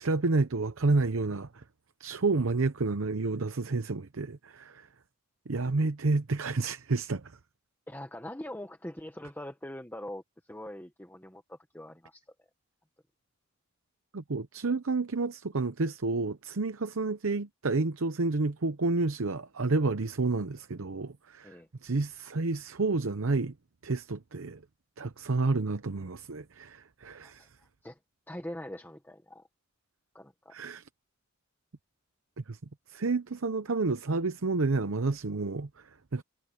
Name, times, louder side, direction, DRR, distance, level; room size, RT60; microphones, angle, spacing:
voice 1, 0.0-1.6 2.0-4.9 5.5-7.3 14.1-23.5 23.8-24.6 25.0-27.5 30.5-30.8 32.5-32.6 32.9-36.2, right 3 dB, 65° right, 0.8 m, -30 dB
voice 2, 7.9-12.2 21.4-21.7 27.2-28.0 28.3-29.5 30.1-30.5, left 1 dB, 10° left, 1.2 m, -43 dB
head